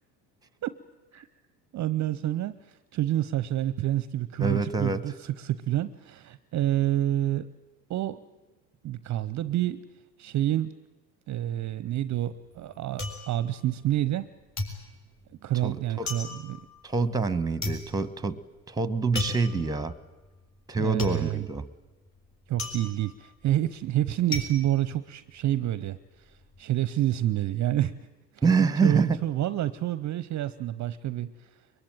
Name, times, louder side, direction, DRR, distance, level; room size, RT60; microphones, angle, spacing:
voice 1, 1.7-7.5 7.9-8.2 8.8-9.9 10.2-10.7 11.3-14.3 15.4-16.7 20.8-21.5 22.5-27.9 28.3-28.4 28.8-31.5, right 13 dB, 35° right, 16 dB, 0.7 m, -28 dB
voice 2, 4.4-5.0 15.6-16.1 16.8-18.4 18.7-19.9 20.7-21.7 28.4-29.2, right 4 dB, 10° right, 16 dB, 1.1 m, -26 dB
sound 1, 11.9-14.3 14.6-25.7 26.0-26.6, left 2 dB, 35° left, 6.3 m, -36 dB
23.0 x 22.0 x 9.1 m, 1.1 s
hypercardioid pair, 80°, 49 cm